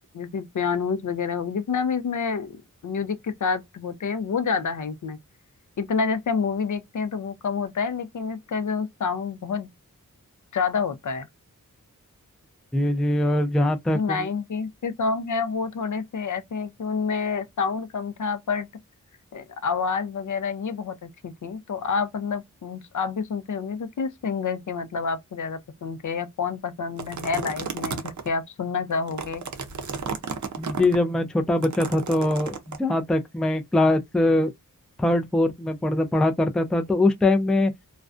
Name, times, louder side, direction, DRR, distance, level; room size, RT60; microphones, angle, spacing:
voice 1, 0.1-5.2 5.8-9.7 10.5-11.3 13.9-18.7 19.3-29.4, left 5 dB, 65° left, 0.5 m, -28 dB
voice 2, 12.7-14.3 30.6-34.5 35.0-37.7, left 1 dB, ahead, 0.3 m, -22 dB
sound 1, 27.0-28.3 28.9-31.0 31.6-32.8, right 5 dB, 60° right, 0.5 m, -33 dB
2.4 x 2.1 x 2.4 m
wide cardioid pair, 80°, 33 cm